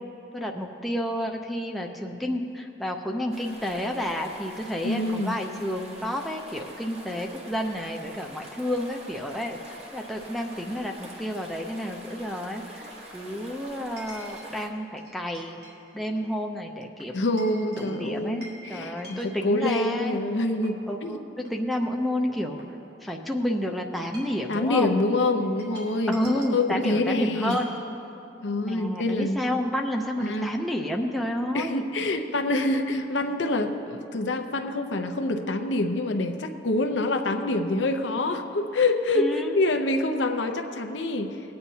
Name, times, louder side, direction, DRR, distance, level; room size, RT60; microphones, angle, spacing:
voice 1, 0.3-15.6 15.9-17.1 17.5-20.2 20.9-22.6 23.0-24.9 26.1-27.7 28.6-31.8 39.1-39.6, equal, ahead, 0 dB, 0.5 m, -30 dB
sound 1, 3.3-14.7, right 1 dB, 35° right, 1.1 m, -45 dB
voice 2, 4.8-5.4 17.1-21.2 24.5-27.6 28.4-29.4 30.2-30.5 31.5-41.4, left 2 dB, 80° left, 6 dB, 0.7 m, -26 dB
Chink clink, 14.0-14.5 15.0-15.8 16.1-16.3 17.0-19.8 20.3-20.9 21.4-21.5 21.8-23.2 23.9-24.5 25.4-26.6 27.4-27.8, right 1 dB, 60° right, 2.5 m, -47 dB
20.5 x 8.8 x 2.8 m, 2.7 s
head